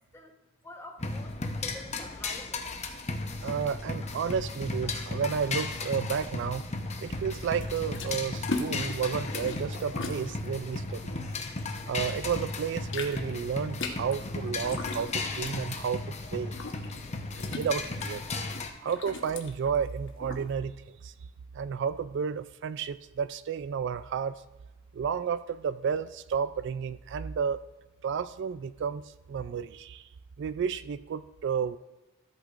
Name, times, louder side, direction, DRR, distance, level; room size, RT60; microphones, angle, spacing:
voice 1, 0.6-2.6, left 1 dB, 15° left, 2 dB, 1.1 m, -47 dB
sound 1, 1.0-18.7, left 3 dB, 35° left, 0.8 m, -35 dB
voice 2, 3.4-6.6 7.0-11.2 11.9-16.0 16.3-16.6 17.5-18.2 18.8-20.7 21.0-21.1 21.5-24.4 24.9-27.6 28.0-29.0 29.3-30.0 30.4-31.8, right 7 dB, 60° right, 15 dB, 0.3 m, -31 dB
sound 2, 7.6-12.1 12.4-20.5, left 3 dB, 65° left, 1.2 m, -39 dB
14.0 x 8.1 x 2.5 m, 1.1 s
head